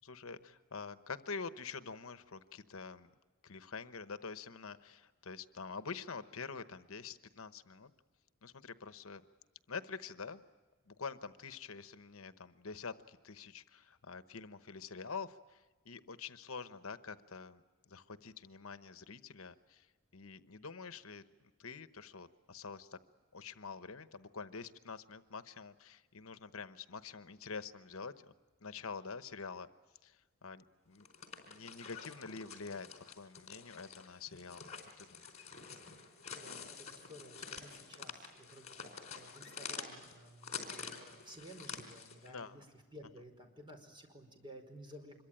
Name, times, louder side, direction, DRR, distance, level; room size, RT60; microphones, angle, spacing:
voice 1, 0.0-3.1 3.4-7.9 8.4-9.2 9.7-10.4 10.9-17.6 17.9-19.9 20.1-21.2 21.6-23.0 23.3-28.1 28.6-29.7 30.0-31.0 31.4-32.9 33.2-35.5 42.3-42.7, left 5 dB, 75° left, 11 dB, 1.0 m, -46 dB
sound 1, 30.9-42.3, left 6 dB, 35° left, 4.2 m, -48 dB
voice 2, 36.3-42.6 42.9-45.2, equal, 25° right, 4 dB, 4.9 m, -54 dB
26.0 x 23.0 x 9.0 m, 1.3 s
head